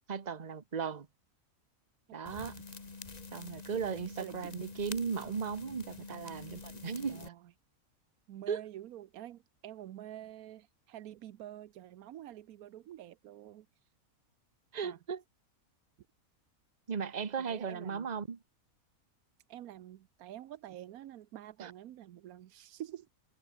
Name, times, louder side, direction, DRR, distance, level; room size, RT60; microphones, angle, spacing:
voice 1, 0.1-1.1 2.1-2.6 3.3-7.2 8.5-8.6 14.7-15.2 16.9-18.4 21.6-21.7, right 6 dB, 30° right, 1.2 m, -36 dB
sound 1, 2.3-7.3, left 3 dB, 30° left, 1.6 m, -47 dB
voice 2, 4.2-4.6 6.1-6.4 7.1-7.5 8.3-13.7 14.8-15.0 17.5-18.1 19.5-23.1, right 12 dB, 90° right, 1.2 m, -47 dB
omnidirectional pair, 1.5 m